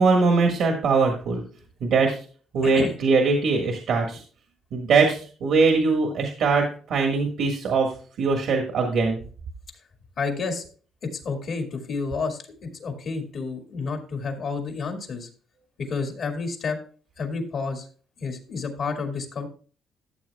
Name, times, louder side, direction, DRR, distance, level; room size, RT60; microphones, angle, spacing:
voice 1, 0.0-1.4 1.8-2.2 2.5-4.2 4.7-7.9 8.2-9.2, right 4 dB, 70° right, 2 dB, 1.5 m, -21 dB
voice 2, 2.6-2.9 10.2-10.6 11.0-15.3 15.8-16.8 17.2-17.9 18.2-19.5, left 4 dB, 60° left, 4 dB, 2.0 m, -30 dB
13.5 x 7.4 x 2.3 m, 0.40 s
cardioid pair, 95°, 0 cm